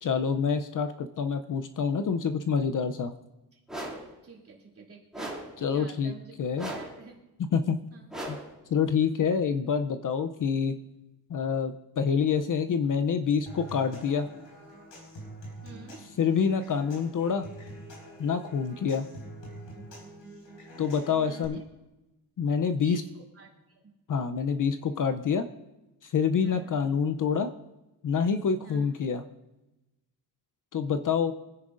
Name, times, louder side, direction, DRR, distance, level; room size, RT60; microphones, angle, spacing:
voice 1, 0.0-3.1 5.6-6.1 6.4-6.7 7.5-7.8 8.3-8.4 8.7-10.7 11.3-14.3 16.2-17.4 18.2-19.1 20.8-21.6 22.4-23.0 24.1-25.5 26.0-27.5 28.0-29.2 30.7-31.3, left 6 dB, 45° left, 9 dB, 0.6 m, -27 dB
voice 2, 3.5-3.9 4.2-5.3 5.7-7.2 7.9-8.1 15.6-16.0 21.1-21.6 22.8-23.9 26.4-26.8 28.6-28.9, right 4 dB, 30° right, -2 dB, 2.9 m, -48 dB
sound 1, 3.7-4.1 5.1-5.6 6.6-7.0 8.1-8.6, right 1 dB, ahead, 2.5 m, -37 dB
Human voice / Acoustic guitar / Percussion, 13.5-21.4, right 1 dB, 80° left, 4.7 m, -46 dB
25.0 x 10.0 x 2.5 m, 1.0 s
wide cardioid pair, 150°, 43 cm